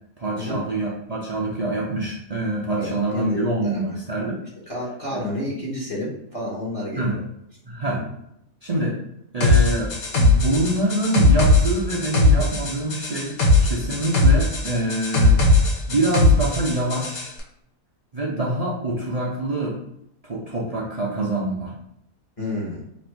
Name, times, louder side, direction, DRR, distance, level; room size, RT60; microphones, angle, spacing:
voice 1, 0.2-4.4 5.1-5.3 7.0-7.2 7.6-8.0 8.6-9.0 9.3-15.4 15.9-17.3 18.1-19.8 20.2-21.7, right 1 dB, 70° right, -5 dB, 0.3 m, -25 dB
voice 2, 2.8-3.9 4.7-7.0 7.9-8.0 22.4-22.8, left 1 dB, 30° left, -4 dB, 0.7 m, -30 dB
sound 1, 9.4-17.3, left 2 dB, 85° left, 1.4 m, -19 dB
3.2 x 2.6 x 4.4 m, 0.78 s
omnidirectional pair, 1.5 m